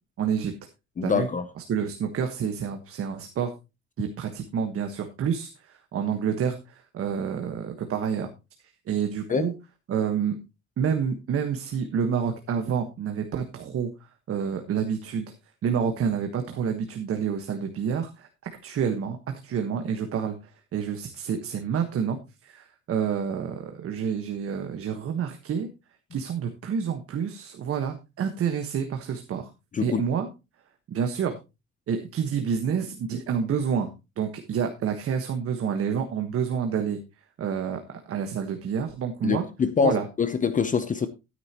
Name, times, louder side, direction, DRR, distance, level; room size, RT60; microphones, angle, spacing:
voice 1, 0.2-0.5 1.0-1.3 1.6-3.5 4.0-8.3 8.9-9.5 9.9-10.4 10.8-13.9 14.3-15.3 15.6-18.3 18.6-19.2 19.4-25.7 26.1-29.5 29.8-30.3 30.9-31.4 31.9-33.9 34.2-37.0 37.4-39.4 39.8-40.0, right 7 dB, 45° right, 1.4 m, -28 dB
voice 2, 1.0-1.4 9.3-9.4 29.7-30.0 39.2-41.1, left 6 dB, 25° left, 0.7 m, -24 dB
13.0 x 9.6 x 2.9 m
cardioid pair, 145°, 31 cm